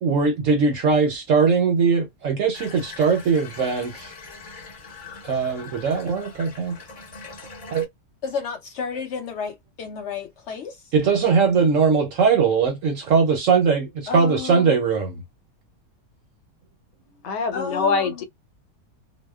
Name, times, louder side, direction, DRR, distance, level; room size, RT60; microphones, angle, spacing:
voice 1, 0.0-4.1 5.2-6.8 7.7-7.9 10.9-15.1, right 5 dB, 65° right, 0.8 m, -20 dB
Water tap faucet / Bathtub (filling or washing), 2.5-7.9, left 4 dB, 35° left, 0.9 m, -42 dB
voice 2, 8.2-10.9 14.1-14.8 17.5-18.2, left 6 dB, 70° left, 0.6 m, -32 dB
voice 3, 17.2-18.2, left 5 dB, 85° left, 1.2 m, -23 dB
2.7 x 2.0 x 2.2 m
omnidirectional pair, 1.8 m